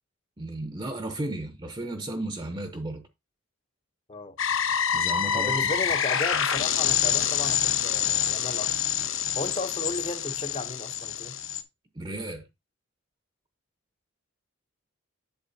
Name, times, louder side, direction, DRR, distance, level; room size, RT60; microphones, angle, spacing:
voice 1, 0.4-3.0 4.9-5.7 11.9-12.4, right 1 dB, 20° right, 0.7 m, -34 dB
sound 1, 4.4-11.6, left 9 dB, 70° left, 1.0 m, -26 dB
voice 2, 5.3-8.8 9.4-11.4, left 2 dB, 30° left, 0.7 m, -34 dB
8.1 x 7.3 x 2.7 m
head